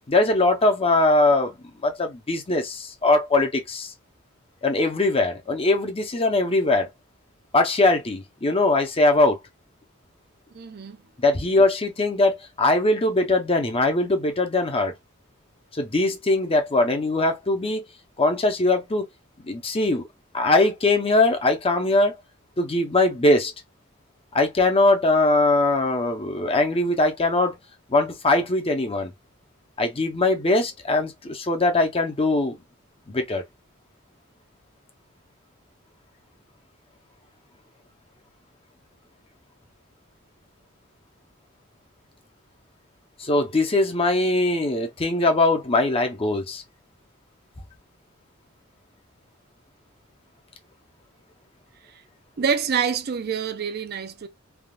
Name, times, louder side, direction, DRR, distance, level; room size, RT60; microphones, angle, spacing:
voice 1, 0.1-1.5 1.8-3.9 4.6-6.9 7.5-9.4 11.2-14.9 15.8-17.8 18.2-19.1 19.4-20.0 20.3-22.1 22.6-23.5 24.3-27.6 27.9-29.1 29.8-32.6 33.1-33.4 43.2-46.6, left 2 dB, 30° left, 0.7 m, -21 dB
voice 2, 10.5-11.0 52.4-54.3, right 6 dB, 50° right, 0.5 m, -26 dB
3.4 x 2.3 x 2.3 m
head